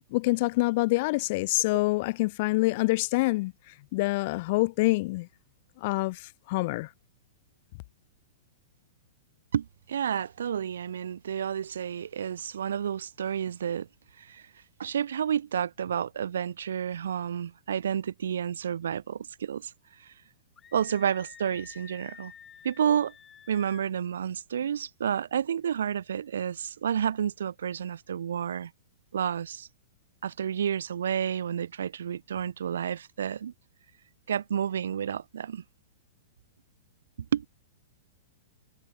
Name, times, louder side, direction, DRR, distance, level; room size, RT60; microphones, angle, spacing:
voice 1, 0.1-3.5 3.9-5.3 5.8-6.9, left 22 dB, 45° left, 0.5 m, -26 dB
voice 2, 9.5-13.9 14.2-14.4 14.8-19.7 20.7-22.3 22.6-23.1 23.5-28.7 29.1-29.7 30.2-33.5 34.3-35.6 37.3-37.5, right 8 dB, 65° right, 0.8 m, -30 dB
Screaming, 20.6-23.9, left 8 dB, 20° left, 4.0 m, -50 dB
figure-of-eight pair, 105°, 0 cm